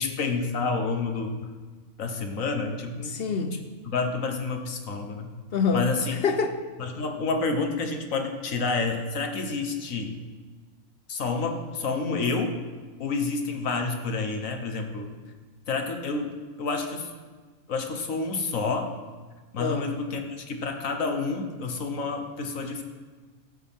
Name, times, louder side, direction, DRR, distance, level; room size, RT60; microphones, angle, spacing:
voice 1, 0.0-1.5 2.0-3.2 3.5-3.6 3.8-5.3 5.7-6.2 6.8-10.2 11.1-12.6 13.0-15.1 15.7-17.1 17.7-18.9 19.5-22.8, left 4 dB, 75° left, 5 dB, 1.5 m, -29 dB
voice 2, 3.0-3.6 5.5-5.9 6.2-6.6 19.6-19.9, left 5 dB, 55° left, 8 dB, 0.8 m, -25 dB
17.0 x 8.4 x 3.6 m, 1.4 s
omnidirectional pair, 1.4 m